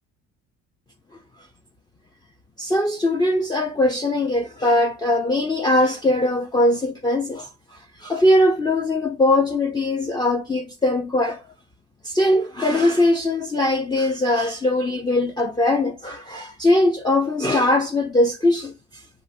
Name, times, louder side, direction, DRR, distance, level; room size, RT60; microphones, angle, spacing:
voice 1, 2.6-11.4 12.0-18.7, left 1 dB, 15° left, 0.5 m, -21 dB
6.9 x 2.6 x 2.6 m
cardioid pair, 90°, 32 cm